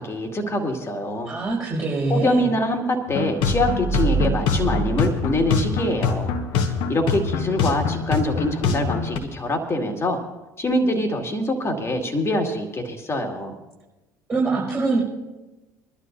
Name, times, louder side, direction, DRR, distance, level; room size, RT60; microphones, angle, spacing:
voice 1, 0.0-1.3 2.1-6.4 6.9-10.2 10.6-13.5, left 1 dB, 25° left, 3 dB, 2.3 m, -24 dB
voice 2, 1.2-2.5 14.3-15.0, right 3 dB, 25° right, -7 dB, 5.8 m, -23 dB
sound 1, 3.1-9.2, left 5 dB, 60° left, 1.3 m, -25 dB
sound 2, 3.4-6.3, right 6 dB, 5° left, 2.8 m, -28 dB
23.5 x 12.0 x 2.7 m, 1.1 s
figure-of-eight pair, 60°, 10 cm